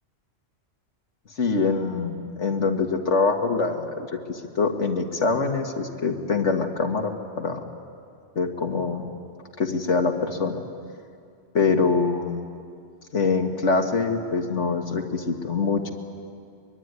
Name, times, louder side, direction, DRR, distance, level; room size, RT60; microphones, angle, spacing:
voice 1, 1.4-7.1 7.4-7.6 8.4-9.0 9.6-10.6 11.5-12.4 13.1-15.9, left 4 dB, 80° left, 4 dB, 2.2 m, -24 dB
23.5 x 22.0 x 9.6 m, 2.3 s
omnidirectional pair, 1.2 m